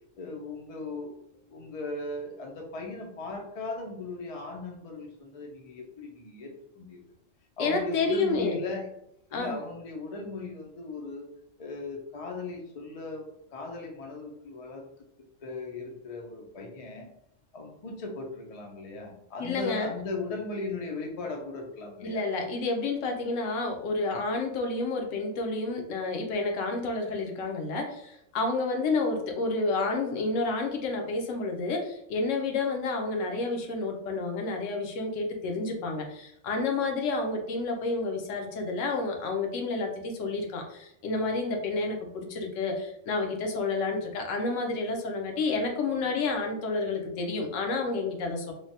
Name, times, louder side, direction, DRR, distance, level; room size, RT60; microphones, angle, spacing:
voice 1, 0.2-1.2 1.5-7.0 7.6-8.9 9.3-11.3 11.6-13.2 13.5-14.8 15.4-17.1 17.5-22.2, left 3 dB, 55° left, 1 dB, 0.4 m, -37 dB
voice 2, 7.6-8.6 9.3-9.6 19.4-19.9 22.0-48.5, left 3 dB, 75° left, 2 dB, 0.9 m, -30 dB
3.2 x 2.1 x 2.7 m, 0.77 s
omnidirectional pair, 1.3 m